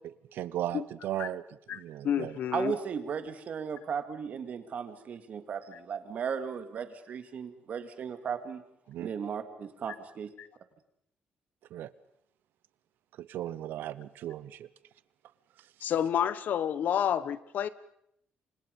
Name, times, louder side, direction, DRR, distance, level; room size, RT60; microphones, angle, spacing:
voice 1, 0.3-1.4 1.7-2.4 8.9-9.1 11.7-11.9 13.2-14.7, right 12 dB, 90° right, 16 dB, 0.9 m, -36 dB
voice 2, 1.7-2.7 10.4-10.5 15.8-17.7, left 9 dB, 60° left, 16 dB, 1.0 m, -30 dB
voice 3, 2.5-8.6 9.0-10.3, right 7 dB, 50° right, 8 dB, 2.3 m, -36 dB
29.0 x 25.5 x 5.3 m, 0.73 s
cardioid pair, 150°, 3 cm